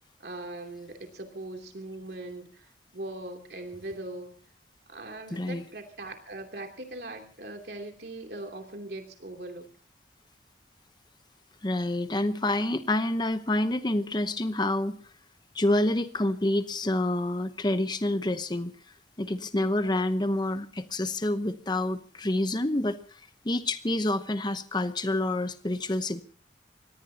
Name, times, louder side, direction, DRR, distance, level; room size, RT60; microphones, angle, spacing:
voice 1, 0.2-2.7 2.9-4.4 4.9-9.7 19.5-19.6 19.9-20.0, right 2 dB, 60° right, 3 dB, 2.9 m, -40 dB
voice 2, 5.3-5.6 11.6-15.0 15.5-18.7 19.2-23.0 23.4-26.2, left 1 dB, 25° left, 11 dB, 0.9 m, -28 dB
24.5 x 18.5 x 2.9 m, 0.43 s
head